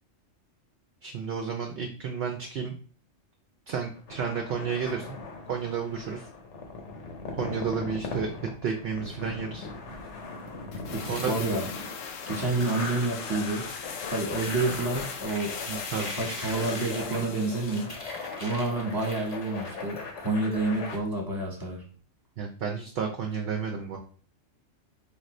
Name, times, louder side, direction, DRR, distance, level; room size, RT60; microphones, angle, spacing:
voice 1, 1.0-2.7 3.7-5.1 5.5-6.3 7.4-8.3 8.6-9.7 11.1-11.3 15.7-16.1 22.4-24.0, right 6 dB, 60° right, 2 dB, 0.7 m, -31 dB
sound 1, 4.0-21.0, left 4 dB, 65° left, 1.1 m, -40 dB
sound 2, 10.7-18.0 18.3-18.4, left 6 dB, 85° left, 1.0 m, -39 dB
sound 3, 10.9-11.9 12.4-13.9 14.2-20.6, left 1 dB, 30° left, 0.8 m, -41 dB
voice 2, 10.9-11.9 12.3-13.7 14.1-15.5 16.0-17.9 18.4-21.8, right 2 dB, 20° right, -1 dB, 1.1 m, -29 dB
4.7 x 2.6 x 3.1 m, 0.43 s
omnidirectional pair, 1.3 m